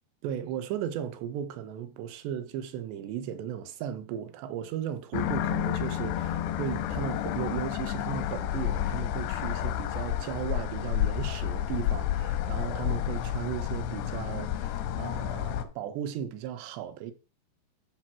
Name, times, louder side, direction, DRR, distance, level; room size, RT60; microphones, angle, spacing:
voice 1, 0.2-17.1, right 9 dB, 85° right, 3.2 m, -36 dB
sound 1, 5.1-15.7, left 11 dB, 85° left, 2.9 m, -30 dB
13.0 x 4.6 x 6.1 m
omnidirectional pair, 4.9 m